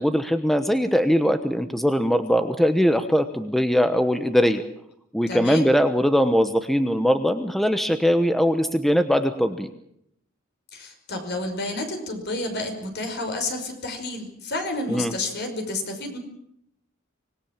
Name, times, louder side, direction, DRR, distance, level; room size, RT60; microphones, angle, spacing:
voice 1, 0.0-4.6 5.1-9.7 14.9-15.1, equal, ahead, 8 dB, 1.1 m, -21 dB
voice 2, 5.3-5.7 10.7-16.2, left 2 dB, 55° left, 5 dB, 5.6 m, -30 dB
25.0 x 20.0 x 7.4 m, 0.74 s
head